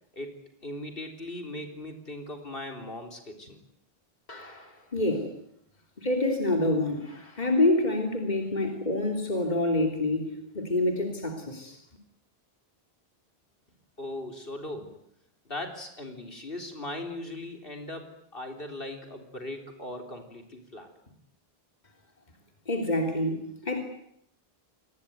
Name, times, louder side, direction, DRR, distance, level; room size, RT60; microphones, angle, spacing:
voice 1, 0.1-3.6 14.0-15.0 15.5-21.1, left 1 dB, 65° left, 4 dB, 4.2 m, -39 dB
voice 2, 4.3-5.3 6.0-11.8 22.7-23.8, left 2 dB, 45° left, 3 dB, 3.4 m, -27 dB
27.5 x 20.5 x 9.4 m, 0.74 s
omnidirectional pair, 1.0 m